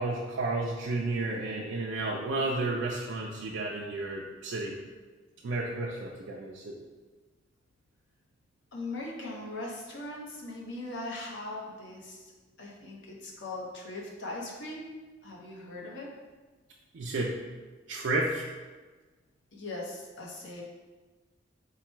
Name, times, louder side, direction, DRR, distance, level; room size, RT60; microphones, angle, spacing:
voice 1, 0.0-4.7 5.4-6.7 16.9-17.3 17.9-18.4, right 2 dB, 70° right, -3 dB, 0.4 m, -32 dB
voice 2, 8.7-12.2 12.6-14.9 15.2-16.1 19.5-20.6, left 2 dB, 70° left, -3 dB, 0.9 m, -40 dB
4.7 x 2.2 x 4.4 m, 1.3 s
head